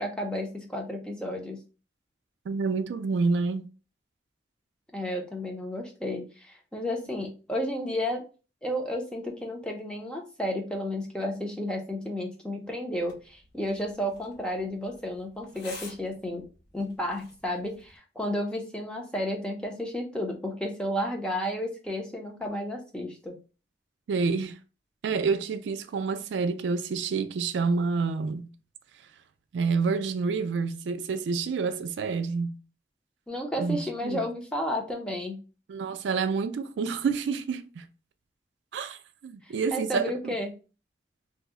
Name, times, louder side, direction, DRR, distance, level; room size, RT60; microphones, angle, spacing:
voice 1, 0.0-1.6 4.9-8.2 8.6-16.4 16.7-23.3 33.3-35.4 39.4-40.5, left 1 dB, 5° left, 0.5 m, -32 dB
voice 2, 2.5-3.7 24.1-24.5 25.0-28.5 29.5-32.6 33.6-34.2 35.7-37.8 38.7-40.3, right 4 dB, 75° right, 0.3 m, -28 dB
sound 1, 12.9-18.0, left 3 dB, 70° left, 1.0 m, -50 dB
2.7 x 2.0 x 3.5 m
head